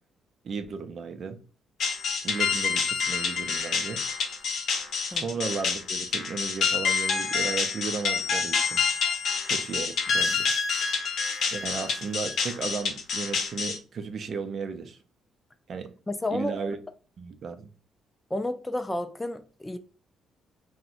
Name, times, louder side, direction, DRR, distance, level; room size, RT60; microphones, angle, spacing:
voice 1, 0.4-1.4 2.2-4.0 5.1-8.8 9.4-10.5 11.5-15.0 15.7-15.9 16.3-16.8 17.2-17.7, right 5 dB, 55° right, 0.4 m, -35 dB
sound 1, 1.8-13.8, left 5 dB, 65° left, 0.6 m, -27 dB
voice 2, 16.1-16.6 18.3-19.8, left 1 dB, 15° left, 0.3 m, -31 dB
2.6 x 2.1 x 4.0 m
cardioid pair, 90°, 0 cm